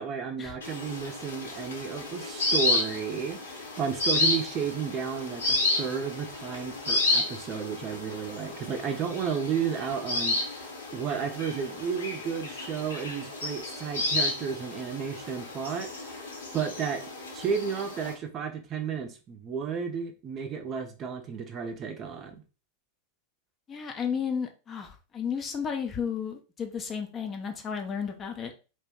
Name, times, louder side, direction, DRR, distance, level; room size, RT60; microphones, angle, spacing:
voice 1, 0.0-16.2 16.5-17.0 17.3-22.4, right 7 dB, 30° right, 5 dB, 0.5 m, -33 dB
sound 1, 0.6-18.1, left 2 dB, 70° left, 0.8 m, -31 dB
voice 2, 23.7-28.5, left 7 dB, 25° left, 4 dB, 0.5 m, -33 dB
2.6 x 2.2 x 3.5 m, 0.33 s
figure-of-eight pair, 90°, 0 cm